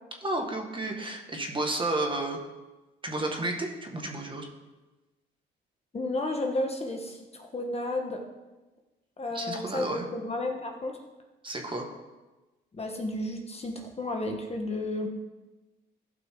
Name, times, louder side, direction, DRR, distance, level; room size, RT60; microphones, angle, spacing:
voice 1, 0.2-2.4 3.0-4.5 9.3-10.0 11.4-11.9, right 2 dB, 25° right, 2 dB, 1.7 m, -31 dB
voice 2, 5.9-8.2 9.2-11.0 12.7-15.1, left 2 dB, 30° left, 2 dB, 1.3 m, -32 dB
15.0 x 5.8 x 3.8 m, 1.1 s
cardioid pair, 90°, 20 cm